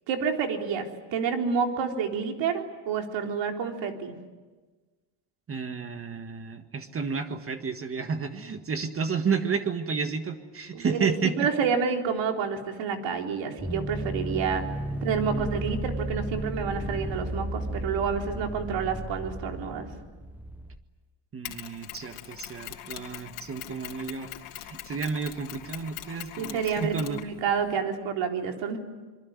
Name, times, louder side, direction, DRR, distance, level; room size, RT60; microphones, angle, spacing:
voice 1, 0.1-4.1 10.7-14.6 15.0-19.9 26.4-28.8, right 6 dB, 65° right, 3 dB, 3.9 m, -29 dB
voice 2, 5.5-11.5 14.9-15.0 15.3-15.5 21.3-27.2, right 5 dB, 25° right, 8 dB, 1.7 m, -31 dB
Cherno Alpha Distortion, 13.6-20.8, right 1 dB, 5° right, 1.0 m, -34 dB
Mechanisms, 21.4-27.8, left 14 dB, 85° left, 3.1 m, -42 dB
26.0 x 22.5 x 9.6 m, 1.3 s
cardioid pair, 135°, 48 cm